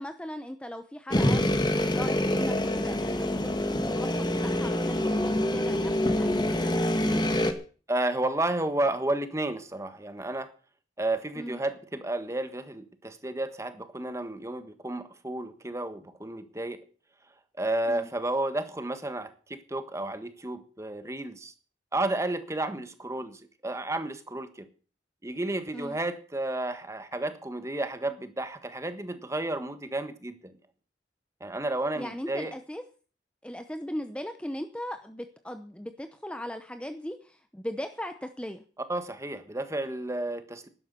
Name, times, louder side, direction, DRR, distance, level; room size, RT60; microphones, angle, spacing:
voice 1, 0.0-1.4 1.8-6.5 11.4-11.6 17.9-18.1 25.7-26.0 31.9-32.8 33.4-38.6, equal, 5° left, 8 dB, 0.8 m, -38 dB
sound 1, 1.1-7.5, left 1 dB, 25° left, 1.5 m, -26 dB
voice 2, 7.9-10.5 11.0-16.8 17.6-21.5 21.9-24.7 25.2-30.5 31.4-32.5 38.9-40.7, right 2 dB, 15° right, 10 dB, 1.4 m, -32 dB
12.0 x 11.0 x 6.9 m, 0.39 s
head